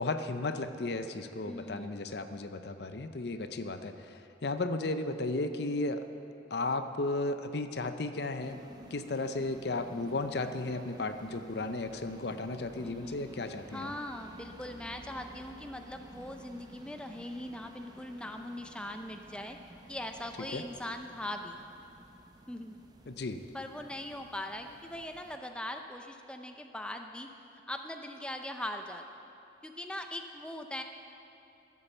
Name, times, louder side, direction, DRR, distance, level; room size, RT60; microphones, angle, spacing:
voice 1, 0.0-6.1 6.5-8.6 8.9-13.9 20.5-20.6 23.1-23.4, left 2 dB, 55° left, 9 dB, 0.6 m, -34 dB
voice 2, 1.5-2.0 12.8-13.2 13.7-19.6 19.9-21.6 22.5-22.7 23.5-27.3 27.7-29.3 29.6-30.8, left 1 dB, 5° left, 5 dB, 0.5 m, -40 dB
smalltown-ambience, 8.4-25.4, right 1 dB, 20° right, 0.8 m, -52 dB
14.0 x 8.4 x 7.2 m, 2.8 s
head